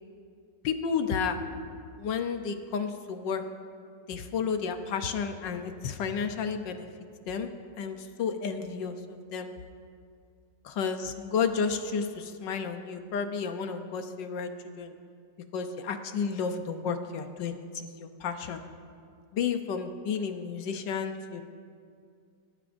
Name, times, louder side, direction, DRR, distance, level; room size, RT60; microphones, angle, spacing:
voice 1, 0.6-1.4 2.0-3.4 4.1-6.9 7.3-7.5 7.8-9.5 10.6-14.5 14.8-14.9 15.5-18.6 19.3-21.4, left 6 dB, 80° left, 7 dB, 1.4 m, -32 dB
23.5 x 13.5 x 2.6 m, 2.3 s
omnidirectional pair, 1.9 m